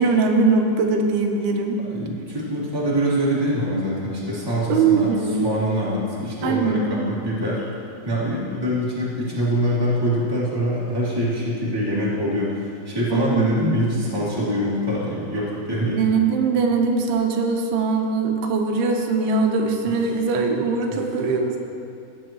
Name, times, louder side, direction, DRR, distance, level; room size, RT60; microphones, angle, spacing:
voice 1, 0.0-1.8 4.7-5.3 6.4-6.8 13.1-13.9 15.9-21.6, right 4 dB, 85° right, 3 dB, 2.8 m, -21 dB
voice 2, 1.9-7.6 8.0-16.1 19.9-20.3 20.9-21.1, equal, 10° right, -8 dB, 1.6 m, -24 dB
16.0 x 9.1 x 3.1 m, 2.5 s
omnidirectional pair, 4.4 m